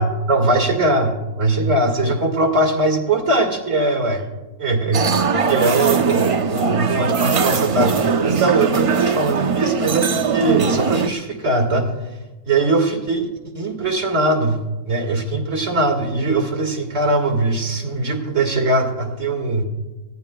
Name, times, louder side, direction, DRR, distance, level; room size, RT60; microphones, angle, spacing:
voice 1, 0.0-4.3 4.6-5.2 5.5-11.9 12.4-13.3 13.5-19.6, right 2 dB, 70° right, 3 dB, 2.4 m, -20 dB
sound 1, 4.9-11.1, right 6 dB, 55° right, 0.3 m, -20 dB
22.0 x 16.0 x 2.3 m, 1.1 s
omnidirectional pair, 1.3 m